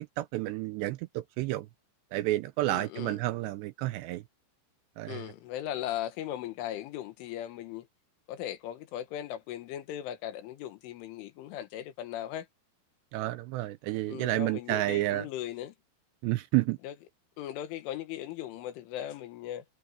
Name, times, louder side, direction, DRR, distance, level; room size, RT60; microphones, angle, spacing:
voice 1, 0.2-1.7 2.1-4.2 5.0-5.2 13.1-15.3 16.2-16.8, right 17 dB, 85° right, 2.6 m, -30 dB
voice 2, 2.7-3.2 5.1-7.9 8.3-12.5 14.1-15.8 16.8-17.0 17.4-19.7, left 12 dB, 90° left, 4.0 m, -38 dB
omnidirectional pair, 5.4 m